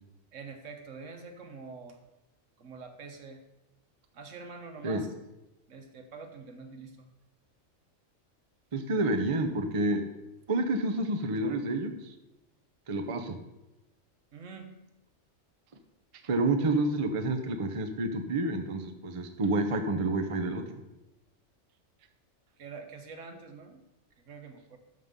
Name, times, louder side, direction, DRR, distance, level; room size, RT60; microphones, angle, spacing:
voice 1, 0.3-2.0 2.6-3.4 4.1-5.1 5.7-7.1 14.3-14.7 22.6-23.8 24.3-24.8, right 4 dB, 65° right, 6 dB, 1.3 m, -45 dB
voice 2, 8.7-10.0 10.5-11.9 12.9-13.4 16.2-20.6, right 2 dB, 35° right, 6 dB, 0.6 m, -29 dB
13.0 x 5.5 x 3.7 m, 0.98 s
omnidirectional pair, 1.4 m